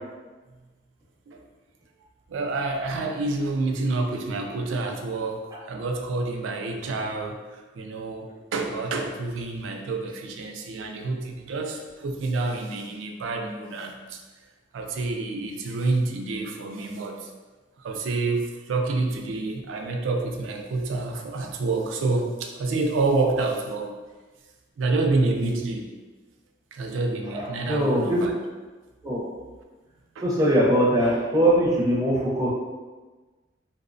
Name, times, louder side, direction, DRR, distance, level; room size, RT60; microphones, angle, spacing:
voice 1, 2.3-14.2 14.7-17.3 17.8-23.9 24.8-25.9 26.7-28.3 30.2-30.3, right 3 dB, 85° right, 3 dB, 0.3 m, -28 dB
voice 2, 27.3-28.3 29.0-29.3 30.2-32.5, right 1 dB, 20° right, -6 dB, 0.5 m, -21 dB
2.8 x 2.0 x 2.5 m, 1.3 s
head